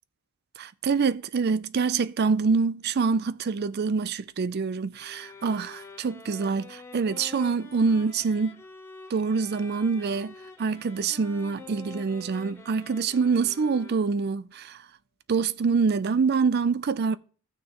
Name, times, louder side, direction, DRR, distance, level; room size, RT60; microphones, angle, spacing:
voice 1, 0.6-8.6 9.1-14.8 15.3-17.2, right 5 dB, 45° right, 0.4 m, -26 dB
sound 1, 4.9-14.4, left 3 dB, 10° left, 1.2 m, -47 dB
14.5 x 6.2 x 3.0 m
head